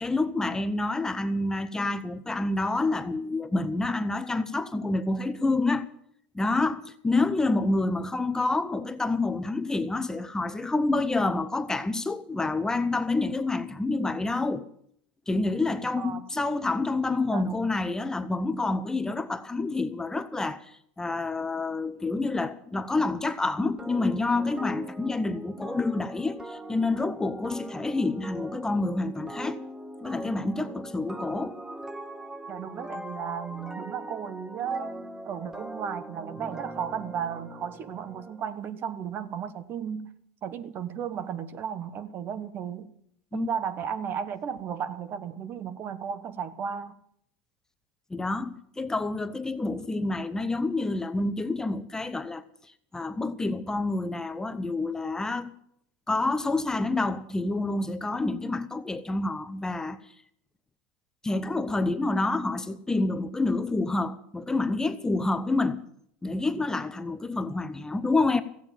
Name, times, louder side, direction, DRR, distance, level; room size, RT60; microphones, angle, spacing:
voice 1, 0.0-5.8 6.3-14.6 15.3-29.6 30.0-31.6 43.3-43.5 48.1-52.4 52.9-55.5 56.1-60.0 61.2-65.8 66.2-68.4, left 2 dB, 10° left, 0.7 m, -28 dB
voice 2, 16.0-16.4 17.2-17.6 32.5-40.1 40.4-42.9 43.3-47.0, right 8 dB, 45° right, 1.2 m, -34 dB
sound 1, 23.8-38.4, right 1 dB, 10° right, 1.0 m, -41 dB
15.0 x 8.8 x 9.1 m
supercardioid pair, 115°, 5 cm